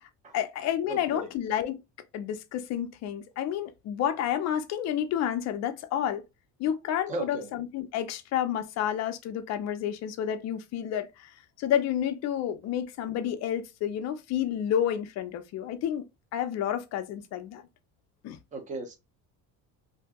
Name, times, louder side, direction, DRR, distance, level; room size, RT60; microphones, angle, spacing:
voice 1, 0.3-1.8 2.1-6.2 6.6-16.1 16.3-17.6 18.2-18.4, left 10 dB, 45° left, 0.5 m, -30 dB
voice 2, 0.9-1.3 7.1-7.5 18.5-18.9, right 2 dB, 20° right, 0.6 m, -35 dB
2.8 x 2.6 x 3.4 m
cardioid pair, 170°, 38 cm